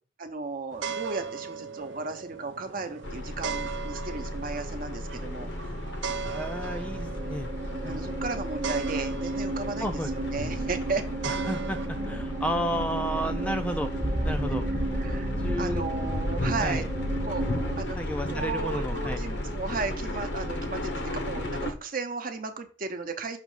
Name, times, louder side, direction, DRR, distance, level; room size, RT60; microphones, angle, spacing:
voice 1, 0.2-5.5 7.8-11.0 15.0-15.3 15.6-16.9 17.2-17.5 17.8-18.0 18.3-23.4, right 4 dB, 45° right, 6 dB, 0.8 m, -35 dB
sound 1, 0.7-11.9, right 6 dB, 75° right, 0.6 m, -38 dB
sound 2, 3.0-21.7, left 1 dB, 65° left, 0.8 m, -34 dB
voice 2, 6.2-7.5 9.8-10.1 11.2-13.9 14.2-14.6 15.4-15.8 16.6-16.9 18.0-19.2, equal, 5° left, 6 dB, 0.4 m, -32 dB
sound 3, 6.5-17.8, right 2 dB, 20° right, 0.9 m, -34 dB
6.0 x 3.1 x 5.4 m, 0.37 s
head